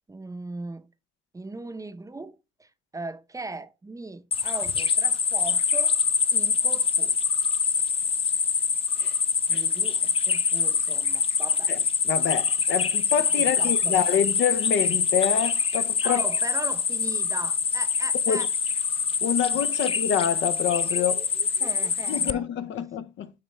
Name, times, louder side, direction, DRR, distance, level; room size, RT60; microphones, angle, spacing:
voice 1, 0.1-0.9 1.3-6.0 6.3-7.1 9.5-11.7 13.6-14.2 16.0-18.5 21.6-22.5 22.8-22.9, right 3 dB, 15° right, 0.6 m, -39 dB
sound 1, 4.3-22.3, left 6 dB, 30° left, 0.4 m, -25 dB
voice 2, 12.0-16.2 18.3-18.5 19.2-21.3 22.1-23.3, left 9 dB, 70° left, 0.6 m, -27 dB
8.8 x 3.3 x 3.2 m
cardioid pair, 90°, 20 cm